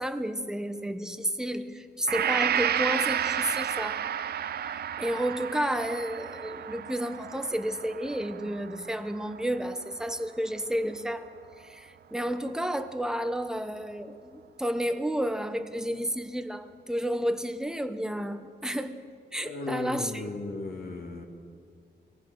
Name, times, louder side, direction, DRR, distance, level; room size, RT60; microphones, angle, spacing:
voice 1, 0.0-4.0 4.6-19.0 19.3-20.2, equal, 5° right, 9 dB, 0.9 m, -31 dB
Gong, 2.1-10.1, right 9 dB, 60° right, 0.5 m, -32 dB
voice 2, 19.4-21.2, left 3 dB, 55° left, 1 dB, 2.0 m, -35 dB
24.0 x 18.5 x 6.3 m, 2.3 s
wide cardioid pair, 170°, 19 cm